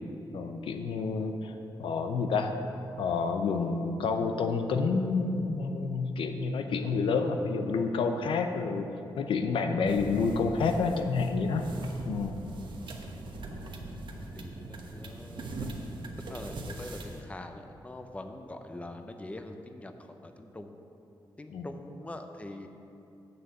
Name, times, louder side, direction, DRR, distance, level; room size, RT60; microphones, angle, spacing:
voice 1, 0.3-2.5 3.0-8.9 9.2-11.7 12.0-12.4 21.5-21.7, left 4 dB, 90° left, 6 dB, 0.6 m, -29 dB
sound 1, 9.9-17.2, right 2 dB, 65° right, 1.0 m, -41 dB
voice 2, 14.3-20.7 21.4-22.7, left 1 dB, 15° left, 6 dB, 0.6 m, -44 dB
6.9 x 6.5 x 7.8 m, 2.8 s
cardioid pair, 95°, 9 cm